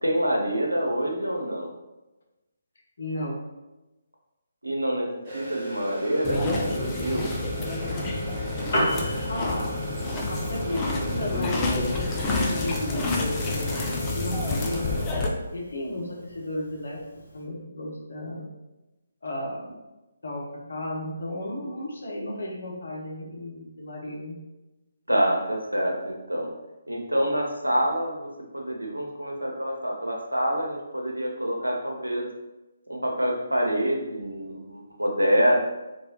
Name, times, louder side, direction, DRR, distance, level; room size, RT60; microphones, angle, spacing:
voice 1, 0.0-1.7 4.6-5.1 5.3-7.3 25.1-26.5 26.9-28.3 28.5-32.3 32.9-35.6, equal, 80° right, 0 dB, 0.6 m, -26 dB
voice 2, 3.0-3.4 9.3-9.7 10.3-15.0 15.5-17.0 17.3-18.4 19.2-19.7 20.2-24.4, left 1 dB, 55° left, -3 dB, 0.8 m, -34 dB
sound 1, 5.2-15.0, right 2 dB, 25° right, 1.1 m, -37 dB
sound 2, 6.2-15.3, left 3 dB, 15° left, 0.4 m, -29 dB
Piano, 8.5-17.5, equal, 40° left, 1.2 m, -36 dB
3.1 x 2.3 x 2.8 m, 1.0 s
figure-of-eight pair, 140°, 0 cm